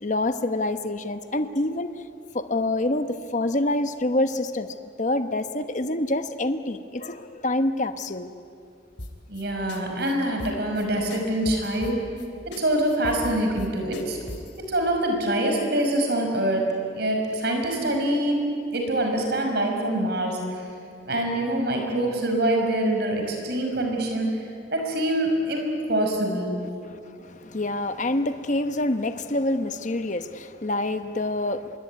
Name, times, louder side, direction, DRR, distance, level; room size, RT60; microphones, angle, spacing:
voice 1, 0.0-2.0 2.3-4.7 5.0-8.3 26.9-31.8, left 1 dB, 40° left, 9 dB, 1.0 m, -26 dB
sound 1, 9.0-9.4 9.7-9.8 10.1-10.2 10.4-10.8 11.1-12.3 12.5-12.6 12.9-14.6, left 1 dB, 65° left, 3.2 m, -38 dB
voice 2, 9.3-12.0 12.5-14.2 14.7-16.6 16.9-18.4 18.7-20.6 21.0-26.5, right 1 dB, 55° right, 2 dB, 5.7 m, -25 dB
25.5 x 21.5 x 9.5 m, 2.4 s
head